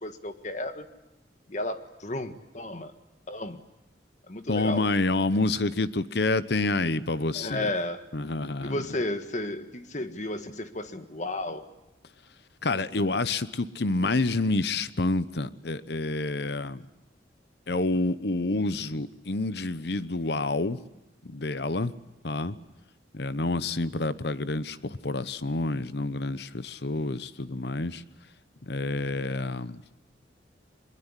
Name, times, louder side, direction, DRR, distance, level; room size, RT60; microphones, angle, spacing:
voice 1, 0.0-0.8 1.5-2.9 3.3-3.6 4.3-4.9 7.3-8.0 8.6-11.6, left 1 dB, 40° left, 1.6 m, -33 dB
voice 2, 4.5-7.7 8.1-8.8 12.6-16.8 17.7-20.8 21.2-21.9 22.2-22.5 23.1-28.0 28.7-29.8, left 2 dB, 65° left, 0.9 m, -28 dB
22.5 x 22.5 x 9.9 m
head